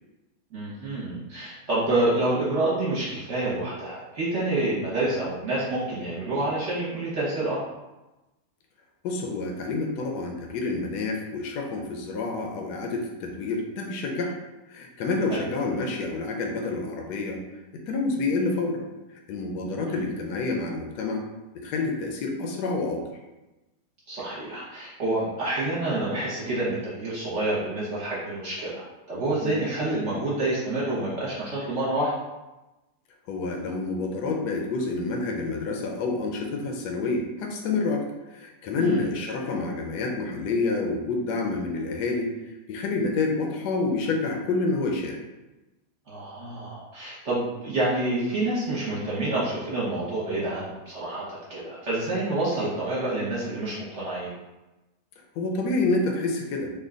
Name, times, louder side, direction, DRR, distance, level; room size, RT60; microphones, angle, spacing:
voice 1, 0.5-7.6 15.3-15.4 19.6-20.0 24.1-32.1 38.8-39.1 46.1-54.3, right 2 dB, 50° right, -8 dB, 1.1 m, -28 dB
voice 2, 9.0-14.4 14.7-17.4 17.9-18.8 19.3-21.3 21.5-23.0 29.4-29.6 33.3-38.0 38.3-42.3 42.7-45.2 55.4-56.7, left 3 dB, 80° left, 1 dB, 1.1 m, -28 dB
3.3 x 2.2 x 3.7 m, 1.0 s
omnidirectional pair, 1.7 m